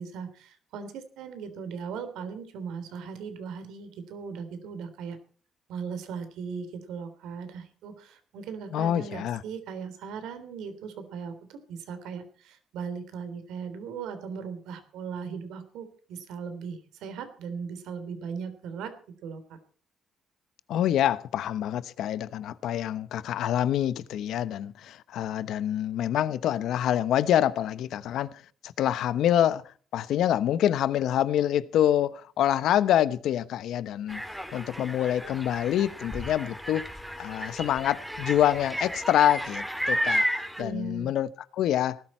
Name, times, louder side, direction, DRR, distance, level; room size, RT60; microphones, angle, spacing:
voice 1, 0.0-5.2 5.7-18.9 19.2-19.4 40.6-41.1, right 6 dB, 90° right, 3.4 m, -38 dB
voice 2, 8.7-9.4 20.7-28.3 28.6-29.6 29.9-34.2 34.5-36.9 37.2-42.0, left 11 dB, 80° left, 0.9 m, -26 dB
sound 1, 34.1-40.6, equal, 5° right, 2.7 m, -32 dB
18.5 x 13.0 x 4.3 m
cardioid pair, 90°, 0 cm